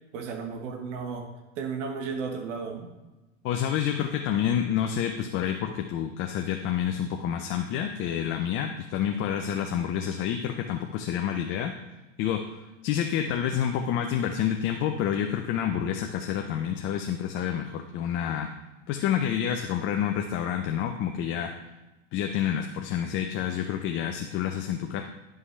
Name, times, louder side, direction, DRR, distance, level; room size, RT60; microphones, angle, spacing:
voice 1, 0.1-1.3 1.5-2.9, right 5 dB, 65° right, 2 dB, 1.4 m, -34 dB
voice 2, 3.4-11.7 12.2-18.5 18.9-21.5 22.1-25.0, left 9 dB, 30° left, 4 dB, 0.5 m, -28 dB
11.5 x 5.4 x 3.3 m, 1.1 s
hypercardioid pair, 125°, 39 cm